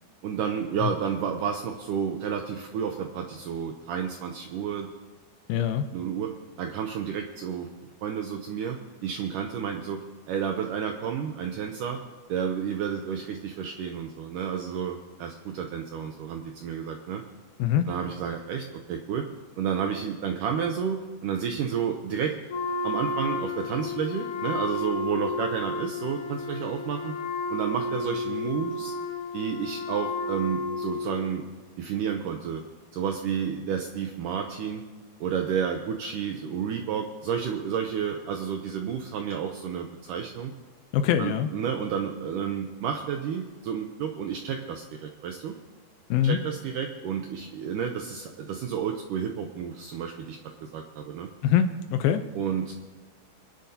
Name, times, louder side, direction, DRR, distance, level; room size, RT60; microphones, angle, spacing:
voice 1, 0.2-4.9 5.9-7.7 8.0-8.8 9.0-12.0 12.3-17.2 17.9-19.3 19.6-22.3 22.8-27.2 27.5-28.9 29.3-31.4 31.8-32.6 32.9-34.8 35.2-40.5 41.2-45.6 46.2-51.3 52.4-52.7, right 7 dB, 80° right, 4 dB, 1.9 m, -31 dB
voice 2, 5.5-5.8 17.6-17.9 40.9-41.5 46.1-46.4 51.4-52.2, left 9 dB, 80° left, 8 dB, 2.3 m, -23 dB
Wind instrument woodwind instrument, 22.5-31.3, left 3 dB, 65° left, 2.7 m, -32 dB
26.0 x 10.5 x 2.8 m, 1.3 s
omnidirectional pair, 4.6 m